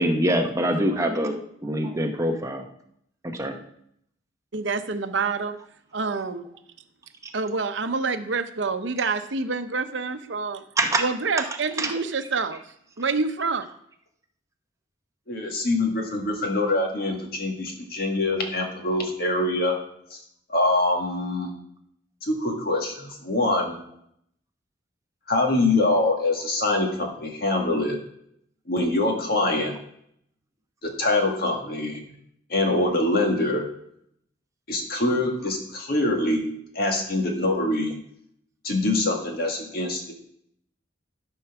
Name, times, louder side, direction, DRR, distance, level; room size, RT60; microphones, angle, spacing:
voice 1, 0.0-2.7 3.2-3.6 10.8-11.0 11.4-11.5 11.8-11.9, right 1 dB, 15° right, 4 dB, 0.8 m, -24 dB
voice 2, 4.5-5.6 5.9-6.5 7.3-10.6 11.0-12.6 13.0-13.7, right 4 dB, 75° right, 9 dB, 0.8 m, -27 dB
voice 3, 15.3-19.7 20.1-20.2 20.5-21.5 22.2-23.8 25.3-28.0 28.7-29.7 30.8-32.1 32.5-33.6 34.7-36.4 36.7-37.9 38.6-40.1, left 2 dB, 55° left, 2 dB, 1.9 m, -24 dB
12.0 x 4.6 x 5.9 m, 0.71 s
head